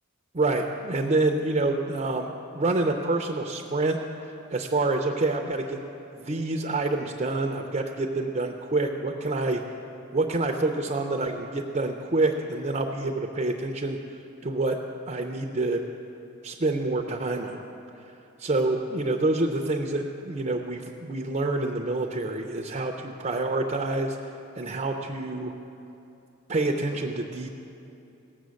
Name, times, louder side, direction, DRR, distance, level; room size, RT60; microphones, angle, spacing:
voice 1, 0.3-4.0 4.2-5.8 6.2-9.6 10.1-14.0 14.4-14.8 15.1-15.8 16.4-17.6 18.4-24.2 24.6-25.5 26.5-27.5, right 2 dB, 35° right, 3 dB, 0.6 m, -27 dB
18.0 x 7.6 x 6.4 m, 2.9 s
head